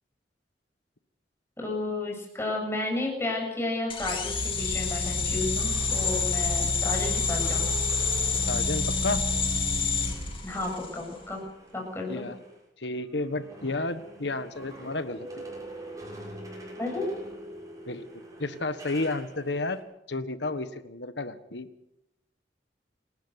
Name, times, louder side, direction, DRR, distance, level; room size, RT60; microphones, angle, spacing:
voice 1, 1.6-7.7 10.4-11.4 11.7-12.3 16.8-17.2, left 2 dB, 15° left, -1 dB, 7.3 m, -32 dB
sound 1, 3.9-11.0, left 4 dB, 30° left, 3.1 m, -28 dB
sound 2, 4.2-12.6 12.9-19.8, right 1 dB, 20° right, 7.1 m, -43 dB
voice 2, 8.5-9.2 12.1-12.4 12.8-15.4 17.9-19.8 20.1-21.7, left 2 dB, 70° left, 11 dB, 1.4 m, -32 dB
28.5 x 13.0 x 8.1 m, 0.88 s
head